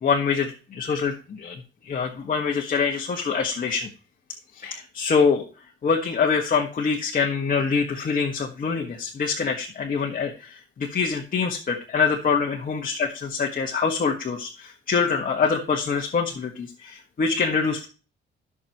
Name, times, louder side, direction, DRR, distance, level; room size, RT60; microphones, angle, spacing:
voice 1, 0.0-1.6 1.8-3.9 4.6-5.4 5.8-17.9, left 5 dB, 45° left, 0 dB, 1.7 m, -25 dB
17.0 x 6.3 x 3.1 m, 0.35 s
cardioid pair, 90°, 20 cm